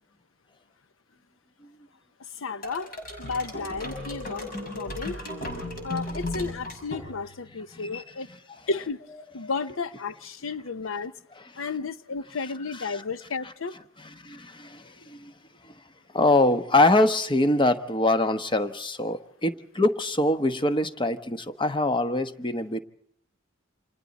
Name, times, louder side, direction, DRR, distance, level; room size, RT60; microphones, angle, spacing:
voice 1, 2.4-2.9 3.2-5.2 5.8-8.3 8.7-9.0 9.3-11.1 11.6-13.8, left 4 dB, 85° left, 0.8 m, -33 dB
sound 1, 2.6-7.5, left 1 dB, 45° left, 6.0 m, -35 dB
voice 2, 7.7-8.0 14.2-15.3 16.1-22.8, left 2 dB, 25° left, 1.1 m, -24 dB
29.0 x 27.0 x 4.1 m
head